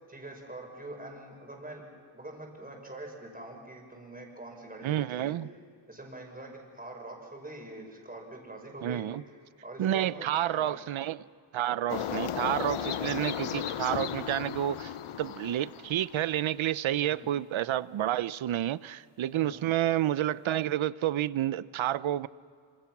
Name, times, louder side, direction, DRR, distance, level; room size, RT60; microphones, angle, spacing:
voice 1, 0.1-1.8 2.1-5.4 5.9-9.0 9.6-10.9 12.0-12.2 16.9-17.3 19.3-19.7, right 2 dB, 20° right, 1 dB, 5.5 m, -44 dB
voice 2, 4.8-5.5 8.8-9.2 9.8-11.3 11.5-22.3, right 12 dB, 75° right, 18 dB, 0.7 m, -30 dB
sound 1, 11.9-16.3, left 9 dB, 85° left, 1.0 m, -35 dB
26.5 x 26.5 x 6.0 m, 2.4 s
wide cardioid pair, 120°, 49 cm